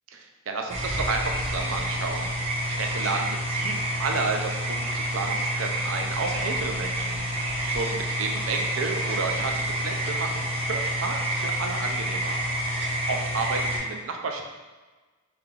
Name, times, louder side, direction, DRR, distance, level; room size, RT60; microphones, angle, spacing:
voice 1, 0.1-12.7 13.1-14.4, right 4 dB, 90° right, 3 dB, 0.5 m, -32 dB
sound 1, 0.7-13.8, right 1 dB, 30° right, 0.6 m, -28 dB
3.3 x 2.9 x 3.6 m, 1.3 s
head